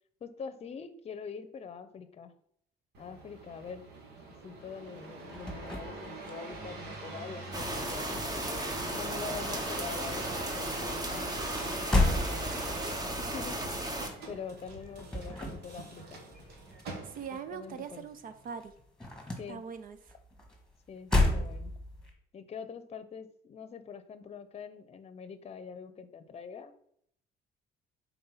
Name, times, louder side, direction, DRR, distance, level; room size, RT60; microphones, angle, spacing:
voice 1, 0.2-2.3 3.0-3.8 4.4-8.6 9.0-13.6 14.3-16.2 17.3-18.1 19.4-19.6 20.9-21.7 22.3-26.8, left 6 dB, 40° left, 12 dB, 0.7 m, -44 dB
sound 1, 2.9-17.5 18.1-18.6, right 3 dB, 75° right, 1.7 m, -44 dB
sound 2, 5.0-7.0 7.2-9.2 9.4-18.1 18.4-22.1, left 2 dB, 5° left, 1.7 m, -34 dB
sound 3, 7.5-14.1, right 1 dB, 20° right, 1.1 m, -35 dB
voice 2, 17.1-18.7 19.5-20.0, right 7 dB, 55° right, 11 dB, 0.8 m, -41 dB
5.6 x 4.2 x 5.6 m, 0.67 s
cardioid pair, 110°, 17 cm